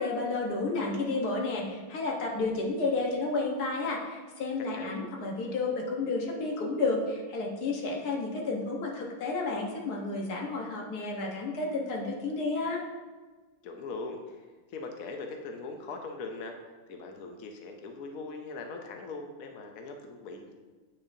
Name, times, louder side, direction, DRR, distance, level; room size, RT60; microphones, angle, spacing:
voice 1, 0.0-12.8, left 3 dB, 50° left, -1 dB, 1.4 m, -31 dB
voice 2, 13.6-16.5 16.9-20.5, left 3 dB, 90° left, 3 dB, 0.7 m, -41 dB
8.5 x 6.1 x 2.6 m, 1.3 s
omnidirectional pair, 2.4 m